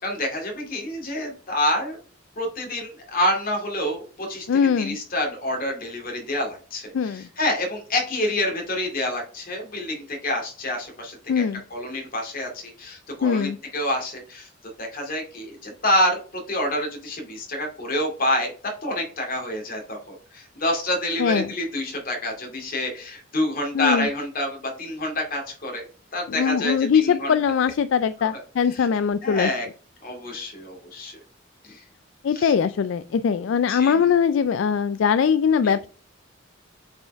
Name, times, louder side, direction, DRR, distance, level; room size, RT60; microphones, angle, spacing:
voice 1, 0.0-2.0 2.4-4.5 4.8-11.4 11.7-14.5 14.8-25.8 26.1-27.4 28.2-28.3 28.7-28.9 29.2-29.7 30.0-31.2 31.6-31.8 32.3-32.5 33.7-34.0 35.6-35.7, left 1 dB, 45° left, 2 dB, 2.2 m, -27 dB
voice 2, 4.5-5.0 6.9-7.2 11.3-11.6 13.2-13.6 21.2-21.5 23.7-24.1 26.3-29.5 32.2-35.9, left 7 dB, 70° left, 13 dB, 0.3 m, -21 dB
7.8 x 4.4 x 3.5 m, 0.40 s
head